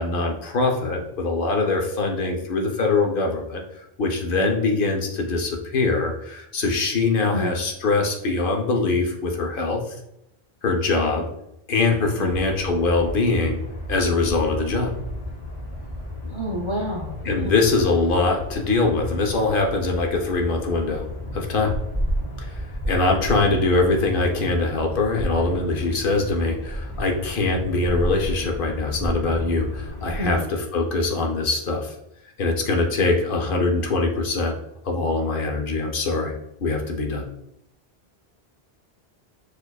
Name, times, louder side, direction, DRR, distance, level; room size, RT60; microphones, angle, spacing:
voice 1, 0.0-10.0 10.6-11.3 11.7-13.6 13.9-14.9 17.2-21.1 21.3-21.7 22.4-31.9 32.4-34.6 34.8-36.3 36.6-37.2, left 3 dB, 65° left, 2 dB, 0.8 m, -23 dB
sound 1, 12.3-30.3, left 1 dB, 25° left, 0.8 m, -32 dB
voice 2, 16.3-17.5 30.2-30.5, left 1 dB, 40° right, -2 dB, 0.4 m, -29 dB
6.5 x 2.4 x 2.2 m, 0.81 s
omnidirectional pair, 1.0 m